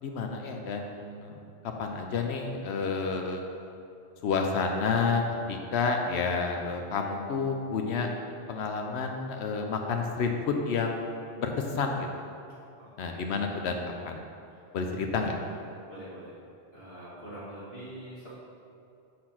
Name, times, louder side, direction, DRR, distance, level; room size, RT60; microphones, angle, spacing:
voice 1, 0.0-1.4 1.8-3.4 4.2-5.2 5.5-8.1 8.5-11.1 11.4-12.1 13.0-13.8 14.1-14.2 14.7-15.4, left 4 dB, 85° left, 3 dB, 0.9 m, -30 dB
voice 2, 12.8-13.2 15.9-16.4 16.7-18.3, right 1 dB, 65° left, -10 dB, 1.7 m, -44 dB
6.6 x 4.2 x 5.8 m, 2.6 s
omnidirectional pair, 1.1 m